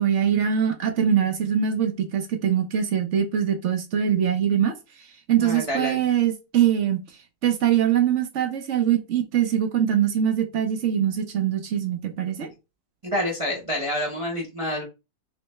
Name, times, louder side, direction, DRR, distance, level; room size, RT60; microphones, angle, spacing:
voice 1, 0.0-4.7 5.3-7.0 7.4-12.5, right 9 dB, 60° right, 0.9 m, -23 dB
voice 2, 5.4-6.0 13.0-14.8, equal, 30° right, 0.7 m, -28 dB
3.2 x 3.1 x 3.2 m
omnidirectional pair, 1.6 m